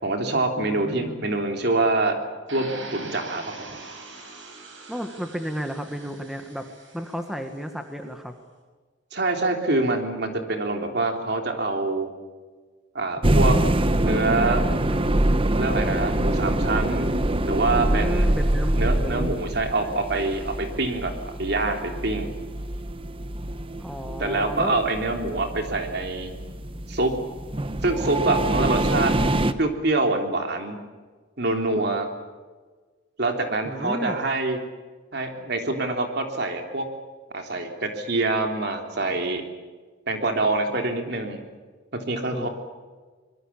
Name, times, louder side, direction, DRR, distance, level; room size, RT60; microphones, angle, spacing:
voice 1, 0.0-2.2 2.5-3.7 9.1-12.1 12.9-13.5 14.0-14.7 15.5-17.1 17.4-18.3 18.7-22.3 24.2-26.3 26.9-27.2 27.8-29.1 29.6-30.7 31.4-32.1 33.2-34.6 35.1-36.9 37.3-39.4 40.1-41.4 41.9-42.5, right 2 dB, 55° right, 4 dB, 3.4 m, -25 dB
voice 2, 0.6-1.3 4.9-6.7 6.9-8.3 17.7-19.3 23.8-24.8 33.6-34.3 42.3-42.5, equal, ahead, 6 dB, 1.5 m, -33 dB
sound 1, 2.5-7.5, right 3 dB, 75° right, 6.0 m, -42 dB
sound 2, 13.2-29.5, right 1 dB, 30° right, 1.0 m, -25 dB
25.0 x 21.5 x 7.3 m, 1.4 s
head